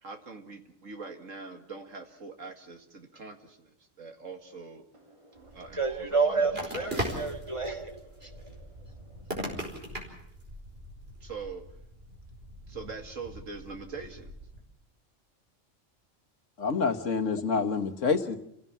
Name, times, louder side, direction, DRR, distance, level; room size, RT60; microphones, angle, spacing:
voice 1, 0.0-4.9 5.3-6.8 7.1-7.6 8.2-8.3 11.2-11.6 12.7-14.3, right 4 dB, 80° right, 5 dB, 2.5 m, -43 dB
voice 2, 5.1-8.7, right 4 dB, 25° right, 4 dB, 2.0 m, -31 dB
sound 1, 5.4-14.6, equal, 50° right, 5.1 m, -40 dB
voice 3, 16.6-18.4, left 5 dB, 75° left, 8 dB, 1.7 m, -27 dB
29.0 x 16.5 x 7.3 m, 0.78 s
omnidirectional pair, 1.3 m